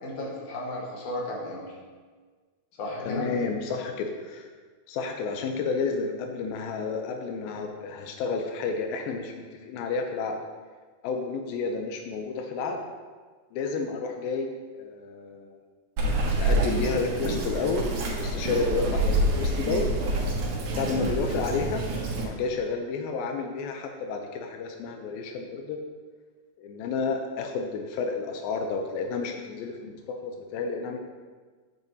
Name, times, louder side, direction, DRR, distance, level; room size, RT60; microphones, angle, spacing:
voice 1, 0.0-1.7 2.8-3.3 21.0-21.1, left 1 dB, 65° left, -2 dB, 2.5 m, -34 dB
voice 2, 3.0-4.5 4.9-10.4 11.0-12.8 13.5-15.6 16.4-19.9 20.8-21.9 22.2-25.8 26.6-30.0 30.2-31.0, left 4 dB, 85° left, 4 dB, 2.5 m, -31 dB
Bird vocalization bird call bird song, 16.0-22.2, right 1 dB, 90° right, 3.3 m, -27 dB
9.3 x 7.8 x 2.8 m, 1.5 s
omnidirectional pair, 4.1 m